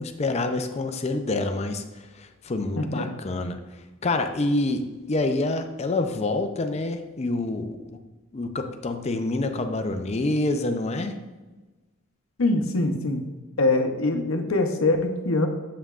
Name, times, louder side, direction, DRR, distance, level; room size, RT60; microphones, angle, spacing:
voice 1, 0.0-3.6 4.0-8.0 8.3-11.2, left 2 dB, 30° left, 7 dB, 0.4 m, -27 dB
voice 2, 2.8-3.1 12.4-13.2 13.6-15.5, left 2 dB, 75° left, 5 dB, 0.7 m, -23 dB
7.5 x 5.5 x 2.4 m, 1.2 s
head